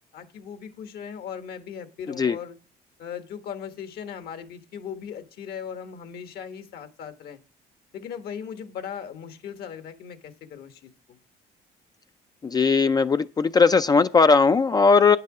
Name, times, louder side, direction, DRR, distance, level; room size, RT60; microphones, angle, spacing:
voice 1, 0.1-2.6 3.0-7.4 7.9-11.2, left 8 dB, 65° left, 1.3 m, -38 dB
voice 2, 12.4-15.2, left 4 dB, 25° left, 0.3 m, -18 dB
9.4 x 6.6 x 4.8 m
cardioid pair, 110°, 17 cm